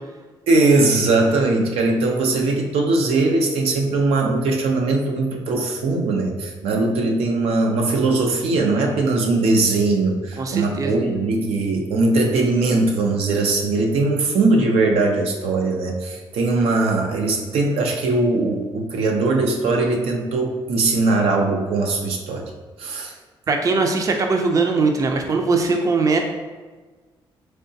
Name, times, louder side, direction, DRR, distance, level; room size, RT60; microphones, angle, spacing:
voice 1, 0.5-22.5 22.8-23.1, right 3 dB, 90° right, 1 dB, 0.5 m, -20 dB
voice 2, 10.4-11.0 23.5-26.2, right 4 dB, 35° right, 4 dB, 0.4 m, -20 dB
3.7 x 3.3 x 2.7 m, 1.3 s
cardioid pair, 100°, 10 cm